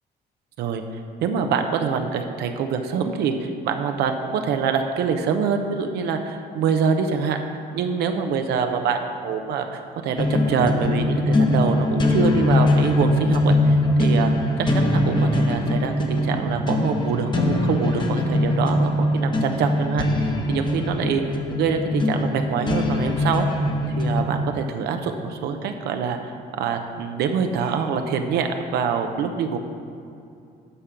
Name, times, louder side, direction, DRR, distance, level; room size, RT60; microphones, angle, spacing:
voice 1, 1.2-7.4 7.7-23.5 24.0-29.6, right 6 dB, 75° right, 6 dB, 0.7 m, -25 dB
sound 1, 10.2-24.2, left 1 dB, 25° left, 1.0 m, -22 dB
11.0 x 3.8 x 7.0 m, 2.5 s
cardioid pair, 110°, 17 cm